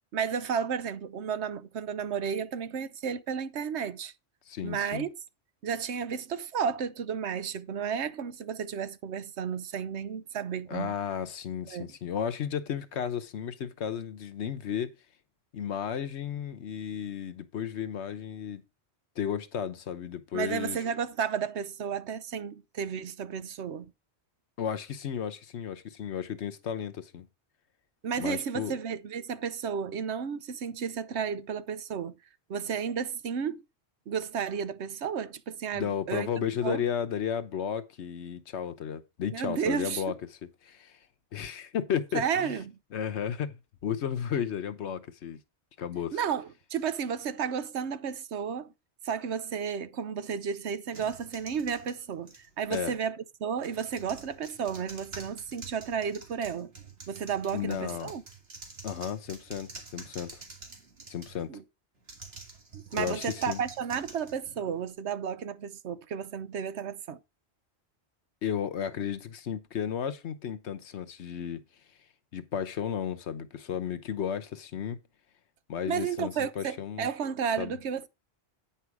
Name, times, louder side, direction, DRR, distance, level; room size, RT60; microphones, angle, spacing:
voice 1, 0.1-4.1 4.6-5.1 5.6-10.9 11.7-11.9 20.3-23.9 28.0-32.1 32.5-33.6 34.1-36.8 39.3-40.0 42.1-42.8 46.1-48.7 49.0-56.7 57.1-58.2 61.5-61.6 62.7-67.2 75.9-78.1, right 7 dB, 90° right, 1.1 m, -32 dB
voice 2, 4.5-5.0 10.7-14.9 15.5-18.6 19.2-20.8 24.6-27.3 28.2-28.7 35.7-40.2 40.4-41.0 41.3-42.5 42.9-45.4 45.8-46.2 52.7-52.9 57.5-58.1 58.8-60.4 61.1-61.5 62.9-63.6 68.4-71.6 72.3-75.0 75.7-77.1 77.6-77.8, left 8 dB, 90° left, 1.2 m, -33 dB
sound 1, 50.9-53.0 53.6-61.5 62.0-64.9, right 3 dB, 65° right, 2.3 m, -47 dB
9.2 x 5.7 x 4.7 m
omnidirectional pair, 1.1 m